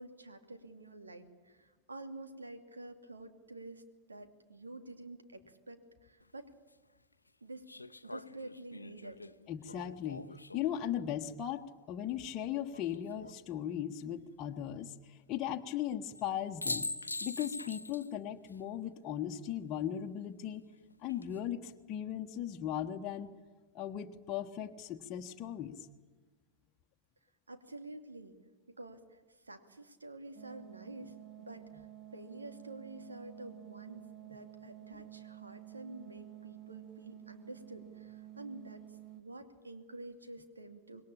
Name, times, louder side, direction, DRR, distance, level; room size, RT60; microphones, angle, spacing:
voice 1, 0.0-3.8 4.1-6.5 7.4-7.7 8.0-9.2 27.5-28.3 28.7-41.0, right 2 dB, 80° right, 8 dB, 2.6 m, -49 dB
sound 1, 6.2-6.3 7.7-10.9 12.7-13.4 16.1-16.3 16.6-18.1 18.5-18.6 20.9-21.4, left 2 dB, 80° left, 0.8 m, -43 dB
voice 2, 9.5-10.3 10.5-16.9 17.2-20.6 21.0-23.3 23.7-25.7, left 10 dB, 35° left, 2 dB, 1.3 m, -38 dB
sound 2, 30.3-39.2, right 13 dB, 30° right, 1.5 m, -51 dB
26.0 x 21.5 x 8.7 m, 1.4 s
figure-of-eight pair, 90°, 0 cm